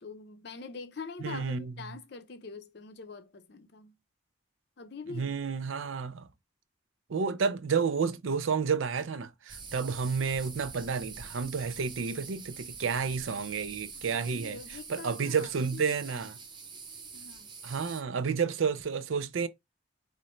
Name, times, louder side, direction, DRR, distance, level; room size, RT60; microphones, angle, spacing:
voice 1, 0.0-3.9 4.8-5.4 13.9-16.3 17.1-17.5, left 4 dB, 55° left, 0.6 m, -44 dB
voice 2, 1.2-1.7 5.1-6.3 7.1-14.6 14.9-16.3 17.6-19.5, right 5 dB, 85° right, 0.5 m, -30 dB
sound 1, 9.5-18.0, right 5 dB, 25° right, 0.6 m, -45 dB
4.0 x 2.6 x 3.1 m
head